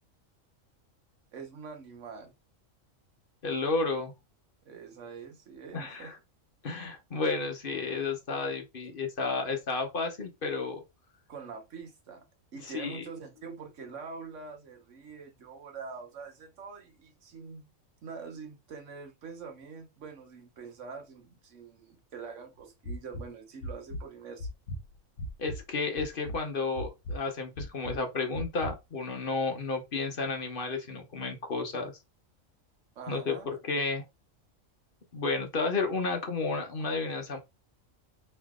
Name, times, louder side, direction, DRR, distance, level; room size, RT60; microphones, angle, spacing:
voice 1, 1.3-2.3 4.6-6.1 9.2-9.3 11.3-12.2 12.5-17.7 18.0-24.5 33.0-33.5, right 5 dB, 65° right, 1.3 m, -44 dB
voice 2, 3.4-4.1 5.7-6.2 6.6-10.8 12.7-13.1 25.4-31.9 33.1-34.0 35.1-37.4, left 3 dB, 45° left, 1.1 m, -32 dB
sound 1, 22.8-23.2 23.6-24.0 24.4-25.6 26.0-26.4 26.8-27.2 27.6-28.0 28.3-28.7, equal, 65° left, 1.2 m, -37 dB
3.2 x 3.1 x 3.6 m
omnidirectional pair, 1.4 m